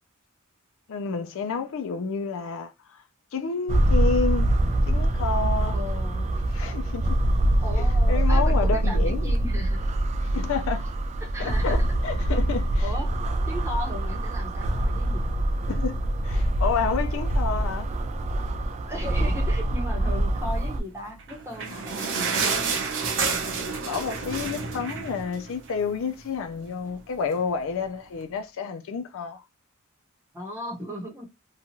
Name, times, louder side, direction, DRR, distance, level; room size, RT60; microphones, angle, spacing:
voice 1, 0.9-3.0 3.3-4.5 4.9-5.8 6.5-7.2 7.7-9.3 10.3-10.9 11.4-12.9 15.7-17.9 23.9-29.4, left 5 dB, 65° left, 0.4 m, -30 dB
sound 1, 3.7-20.8, right 1 dB, 30° right, 0.3 m, -24 dB
voice 2, 5.7-6.4 7.6-9.9 11.2-11.8 12.8-13.1 13.5-15.3 18.9-22.4 30.3-31.3, left 1 dB, 15° right, 0.9 m, -36 dB
sound 2, 21.1-25.9 26.2-26.3 26.6-26.8 27.5-27.6, right 5 dB, 60° right, 0.7 m, -29 dB
2.7 x 2.3 x 2.9 m
head